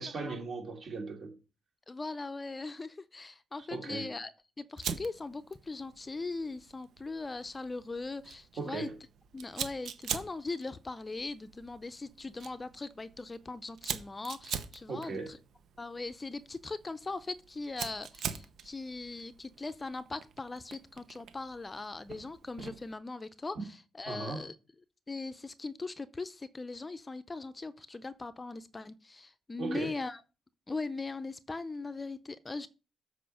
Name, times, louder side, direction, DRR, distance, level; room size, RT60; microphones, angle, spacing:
voice 1, 0.0-1.4 3.6-4.1 8.6-9.0 14.9-15.3 23.5-23.6 24.1-24.5 29.6-29.9, right 3 dB, 50° right, 2.7 m, -38 dB
voice 2, 1.9-4.3 4.6-8.9 9.3-15.4 15.8-23.6 24.0-24.5 25.1-30.2 30.7-32.7, left 3 dB, 25° left, 0.6 m, -40 dB
Fire, 4.8-22.9, right 8 dB, 70° right, 0.9 m, -44 dB
7.6 x 5.0 x 6.5 m
cardioid pair, 90°, 0 cm